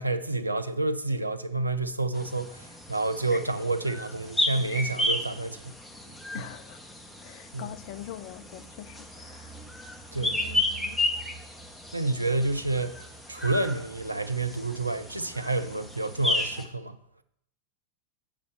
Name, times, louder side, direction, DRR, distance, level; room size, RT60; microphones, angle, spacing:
voice 1, 0.0-5.8 6.3-6.4 7.5-7.8 10.1-10.4 11.9-13.0 13.3-17.0, right 2 dB, 85° right, 0.6 m, -29 dB
sound 1, 2.1-16.6, left 1 dB, 5° left, 1.0 m, -33 dB
voice 2, 6.3-6.8 7.2-9.5 10.1-11.0, left 12 dB, 45° left, 0.4 m, -43 dB
6.8 x 5.1 x 6.6 m
figure-of-eight pair, 90°, 0 cm